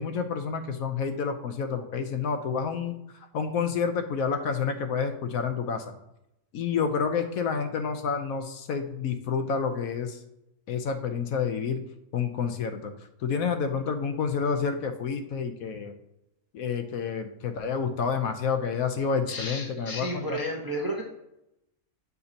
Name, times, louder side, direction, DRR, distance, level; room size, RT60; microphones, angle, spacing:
voice 1, 0.0-2.9 3.3-5.8 6.5-10.2 10.7-11.8 12.1-12.9 13.2-15.9 16.5-20.4, left 6 dB, 70° left, 7 dB, 1.0 m, -29 dB
voice 2, 19.3-21.0, equal, 25° right, -1 dB, 0.5 m, -32 dB
6.8 x 2.8 x 5.0 m, 0.86 s
omnidirectional pair, 1.6 m